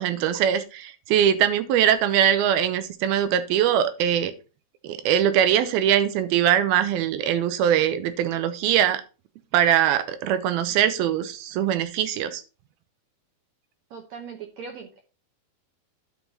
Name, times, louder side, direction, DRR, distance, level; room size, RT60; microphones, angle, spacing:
voice 1, 0.0-4.3 4.8-9.0 9.5-12.4, right 10 dB, 90° right, 11 dB, 2.7 m, -22 dB
voice 2, 13.9-15.0, right 6 dB, 70° right, 4 dB, 1.7 m, -39 dB
11.0 x 5.6 x 4.1 m, 0.33 s
omnidirectional pair, 4.4 m